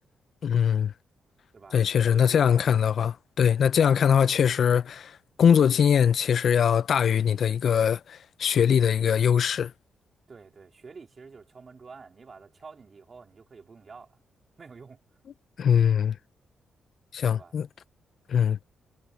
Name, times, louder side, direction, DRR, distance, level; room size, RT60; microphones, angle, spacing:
voice 1, 0.4-0.9 1.7-9.7 15.6-16.2 17.1-17.7 18.3-18.6, left 8 dB, 65° left, 0.6 m, -22 dB
voice 2, 2.1-2.8 3.9-4.2 10.3-14.2 14.6-15.0 17.3-17.6 18.4-18.6, right 4 dB, 40° right, 2.6 m, -48 dB
cardioid pair, 75°, 0 cm